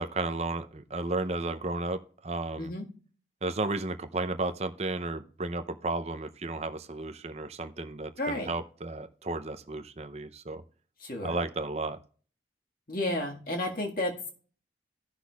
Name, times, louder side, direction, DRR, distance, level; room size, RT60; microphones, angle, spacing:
voice 1, 0.0-2.7 3.4-10.6 11.2-12.0, right 2 dB, 35° right, 10 dB, 0.6 m, -33 dB
voice 2, 8.2-8.5 11.0-11.3 12.9-14.3, left 1 dB, 50° left, 1 dB, 1.7 m, -32 dB
16.0 x 6.0 x 2.3 m, 0.42 s
head